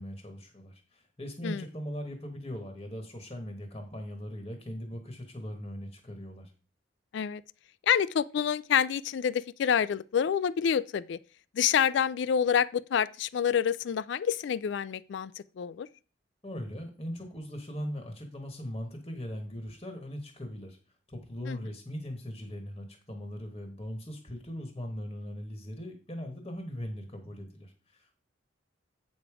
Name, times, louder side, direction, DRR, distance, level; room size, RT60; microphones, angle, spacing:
voice 1, 0.0-6.5 16.4-20.8 21.1-28.2, equal, 25° left, 1.2 m, -40 dB
voice 2, 7.9-11.2 11.6-15.3 15.6-15.9 21.5-21.6, left 8 dB, 60° left, 0.3 m, -27 dB
8.0 x 5.1 x 4.7 m
head